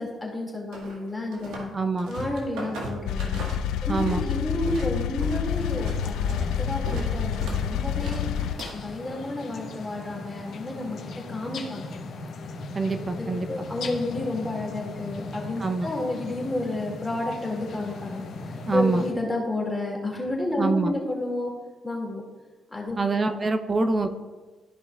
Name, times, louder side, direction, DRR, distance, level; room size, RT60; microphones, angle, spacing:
voice 1, 0.0-1.7 2.1-3.4 3.8-11.0 11.3-11.9 12.9-21.5 21.8-22.2 22.7-23.0, left 2 dB, 15° left, -2 dB, 2.1 m, -31 dB
sound 1, 0.7-1.7 2.0-4.2 4.5-8.9, right 1 dB, 85° right, 1.7 m, -37 dB
voice 2, 1.7-2.2 3.9-4.2 12.7-13.5 15.6-15.9 18.7-19.0 20.6-20.9 23.0-24.1, right 3 dB, 30° right, 8 dB, 0.6 m, -25 dB
sound 2, 3.1-8.5, left 9 dB, 90° left, 0.3 m, -28 dB
sound 3, 5.4-19.1, left 3 dB, 65° left, 0.9 m, -38 dB
13.5 x 5.3 x 2.3 m, 1.3 s
cardioid pair, 90°, 0 cm